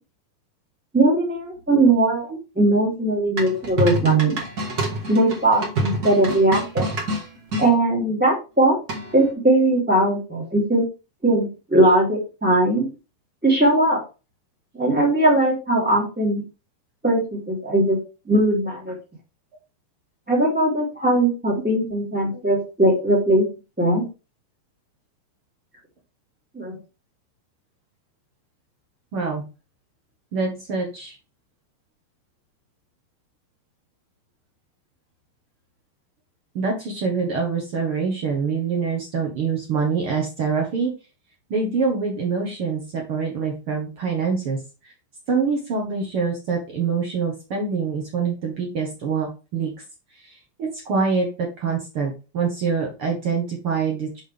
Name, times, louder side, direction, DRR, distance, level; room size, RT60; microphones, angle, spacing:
voice 1, 0.9-2.3 2.6-4.4 5.1-6.9 7.6-8.8 9.1-10.8 11.2-12.9 13.4-14.0 14.7-16.4 17.0-18.0 18.2-18.9 20.3-23.5 23.8-24.0 26.5-26.8, right 1 dB, 5° right, -3 dB, 2.3 m, -19 dB
sound 1, 3.4-7.7 8.9-9.3, right 1 dB, 70° right, 0.9 m, -27 dB
voice 2, 29.1-29.4 30.3-31.1 36.5-40.9 41.5-44.9 45.3-49.7 50.1-54.2, right 5 dB, 90° right, 0 dB, 1.2 m, -25 dB
6.8 x 6.5 x 3.5 m, 0.30 s
omnidirectional pair, 5.0 m